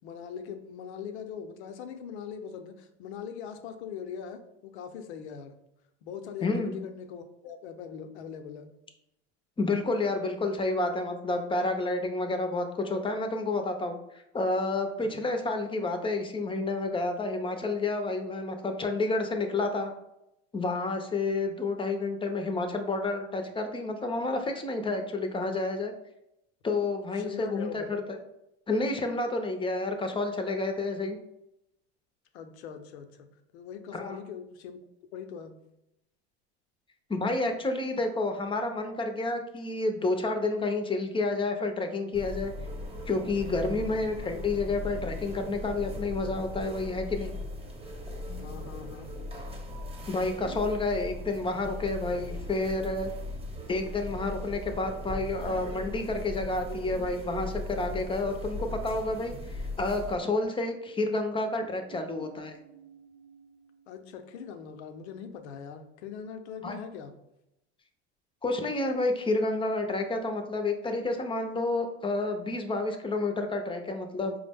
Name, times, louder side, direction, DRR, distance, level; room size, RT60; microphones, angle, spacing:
voice 1, 0.0-5.5 6.0-8.7 15.0-15.3 27.2-28.0 32.3-33.3 33.5-34.8 35.1-35.6 43.5-43.9 48.4-49.1 63.9-67.1, left 7 dB, 85° left, 7 dB, 0.6 m, -41 dB
voice 2, 6.4-6.7 9.6-14.0 14.3-19.9 20.5-25.9 26.6-28.2 28.7-31.2 33.9-34.2 37.1-42.5 43.1-47.4 50.1-53.1 53.7-62.6 66.6-66.7 68.4-74.4, left 2 dB, 15° left, 6 dB, 0.5 m, -30 dB
sound 1, 42.1-60.2, left 1 dB, 20° right, 0.9 m, -38 dB
sound 2, 50.2-52.5 52.7-53.4 56.7-59.6 59.8-60.0 61.6-64.4, right 5 dB, 65° right, 0.5 m, -48 dB
4.8 x 2.1 x 3.4 m, 0.84 s
supercardioid pair, 100°, 32 cm